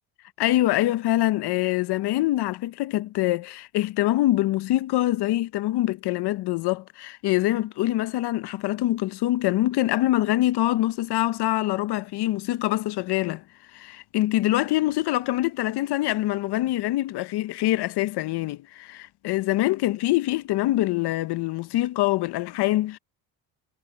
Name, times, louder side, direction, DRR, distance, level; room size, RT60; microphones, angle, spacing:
voice 1, 0.4-13.4 13.7-23.0, left 16 dB, 65° left, 0.9 m, -24 dB
cardioid pair, 100°, 44 cm